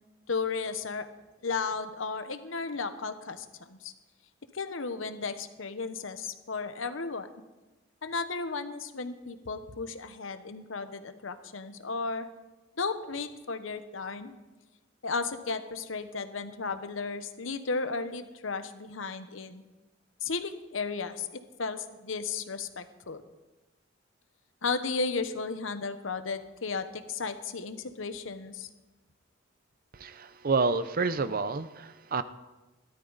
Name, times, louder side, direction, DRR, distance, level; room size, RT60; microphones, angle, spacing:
voice 1, 0.3-1.1 1.4-3.9 4.5-7.3 8.0-12.3 12.8-14.4 15.0-19.6 20.2-23.2 24.6-28.7, left 4 dB, 85° left, 10 dB, 1.0 m, -34 dB
voice 2, 30.0-32.2, right 4 dB, 50° right, 13 dB, 0.6 m, -29 dB
16.5 x 13.0 x 4.1 m, 1.1 s
head